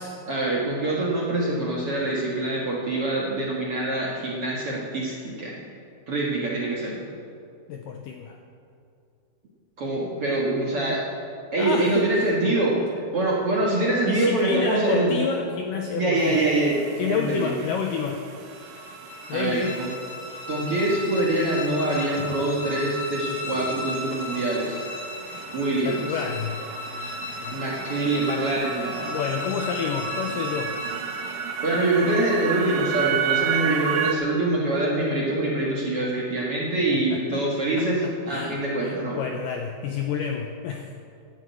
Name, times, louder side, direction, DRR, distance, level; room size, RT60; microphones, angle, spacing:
voice 1, 0.3-5.6 6.1-7.0 9.8-11.0 11.5-12.8 13.1-15.1 15.9-16.8 17.1-17.7 19.3-19.9 20.5-24.8 25.5-26.0 27.5-29.1 31.6-39.2, right 2 dB, 50° right, -4 dB, 1.8 m, -24 dB
voice 2, 7.7-8.4 11.6-12.3 14.0-16.4 17.0-18.2 19.3-19.7 25.8-26.6 27.4-27.9 29.1-30.8 36.9-37.4 37.8-40.8, left 6 dB, 85° left, 3 dB, 1.9 m, -30 dB
sound 1, 16.2-34.1, right 9 dB, 75° right, 1.9 m, -33 dB
sound 2, 18.4-31.8, left 2 dB, 55° left, 2.0 m, -36 dB
11.0 x 9.3 x 8.1 m, 2.4 s
omnidirectional pair, 4.7 m